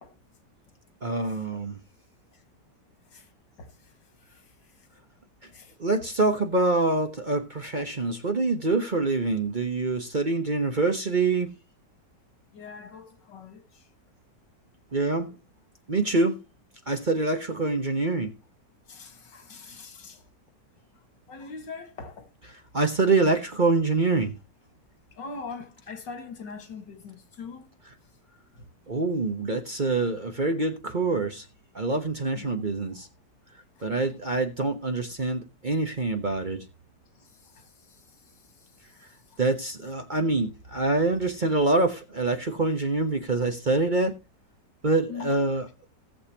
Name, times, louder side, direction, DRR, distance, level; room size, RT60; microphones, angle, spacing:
voice 1, 1.0-1.8 5.8-11.5 14.9-15.3 15.9-16.4 16.9-18.3 22.7-24.4 28.9-31.4 31.7-33.1 33.8-36.6 39.4-44.2 44.8-45.7, right 3 dB, 35° right, 1.0 m, -25 dB
voice 2, 3.6-4.9 5.5-5.8 12.5-13.9 18.9-20.3 21.3-22.5 25.1-27.7 28.6-28.7 32.3-32.5 33.8-33.9 37.2-39.4 45.1-45.5, left 4 dB, 85° left, 2.4 m, -43 dB
18.0 x 6.8 x 2.9 m
omnidirectional pair, 1.9 m